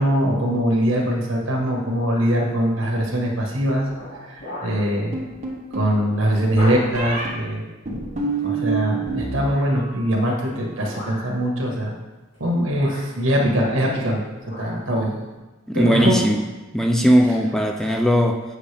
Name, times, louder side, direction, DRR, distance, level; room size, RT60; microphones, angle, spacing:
voice 1, 0.0-3.9 4.2-5.2 5.7-7.6 8.4-11.9 12.4-14.2 14.6-15.1 15.7-16.2, equal, 75° right, -1 dB, 1.5 m, -22 dB
sound 1, 2.1-2.4 2.9-3.3 3.8-4.9 5.3-5.5 5.8-5.9 6.5-7.4 9.3-9.8 10.7-11.4 12.3-12.4 12.7-14.1 14.3-14.8 15.3-15.4, left 1 dB, 65° left, 2.3 m, -37 dB
sound 2, 5.1-5.9 6.9-7.3 7.9-9.4 9.7-10.3, right 4 dB, 35° right, 1.2 m, -27 dB
voice 2, 15.7-16.4 16.7-18.4, equal, ahead, 3 dB, 0.3 m, -18 dB
7.6 x 5.0 x 3.4 m, 1.1 s
head